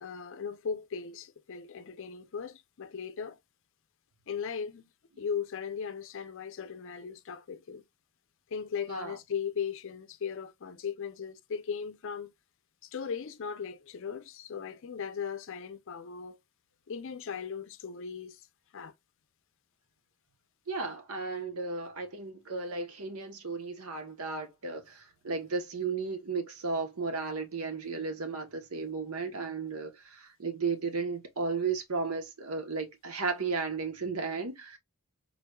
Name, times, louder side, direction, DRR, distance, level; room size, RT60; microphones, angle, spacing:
voice 1, 0.0-3.4 4.3-4.8 5.2-7.8 8.5-12.3 12.8-16.4 16.9-18.4 18.7-18.9, left 6 dB, 60° left, 0.5 m, -37 dB
voice 2, 20.7-34.8, right 4 dB, 80° right, 0.9 m, -34 dB
3.9 x 2.9 x 2.2 m
head